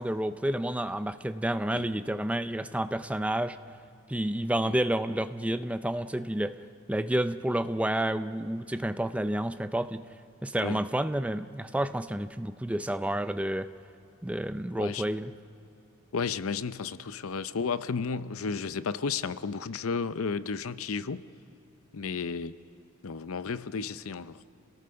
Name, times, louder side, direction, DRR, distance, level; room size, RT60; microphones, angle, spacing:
voice 1, 0.0-3.6 4.1-6.6 6.9-10.0 10.4-13.7 14.2-15.3, right 1 dB, 5° right, 11 dB, 0.4 m, -30 dB
voice 2, 16.1-21.2 21.9-22.6 23.0-24.4, left 5 dB, 75° left, 14 dB, 0.6 m, -33 dB
29.5 x 19.0 x 5.7 m, 2.7 s
head